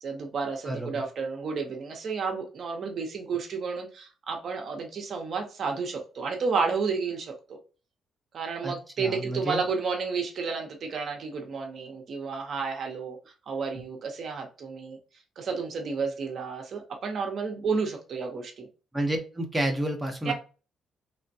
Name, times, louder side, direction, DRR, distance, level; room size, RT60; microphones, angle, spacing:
voice 1, 0.0-7.6 8.3-15.0 15.4-18.7 20.2-20.3, right 5 dB, 55° right, 2 dB, 0.7 m, -31 dB
voice 2, 8.6-9.6 18.9-20.3, right 1 dB, 10° right, 2 dB, 0.8 m, -30 dB
3.3 x 2.1 x 2.6 m, 0.33 s
cardioid pair, 90°, 0 cm